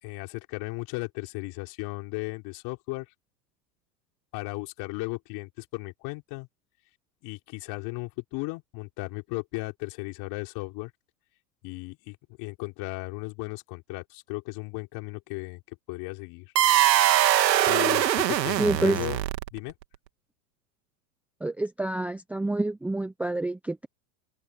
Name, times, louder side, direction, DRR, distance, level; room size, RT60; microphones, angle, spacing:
voice 1, 0.0-3.1 4.3-6.5 7.2-10.9 11.6-15.6 15.9-16.5 17.6-19.2 19.5-19.7, left 25 dB, 45° left, 5.8 m, -35 dB
sound 1, 16.6-19.7, right 12 dB, 85° right, 2.9 m, -22 dB
voice 2, 18.6-19.0 21.4-23.9, right 2 dB, 5° right, 0.8 m, -27 dB
open air
hypercardioid pair, 130°, 49 cm